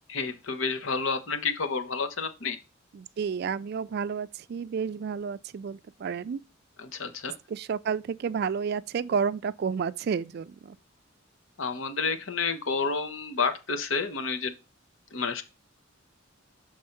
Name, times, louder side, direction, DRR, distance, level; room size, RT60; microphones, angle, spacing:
voice 1, 0.1-2.6 6.8-7.3 11.6-14.5 15.1-15.4, left 4 dB, 85° left, 1.0 m, -30 dB
voice 2, 2.9-6.4 7.5-10.8, right 6 dB, 55° right, 0.3 m, -31 dB
6.5 x 3.5 x 5.7 m
head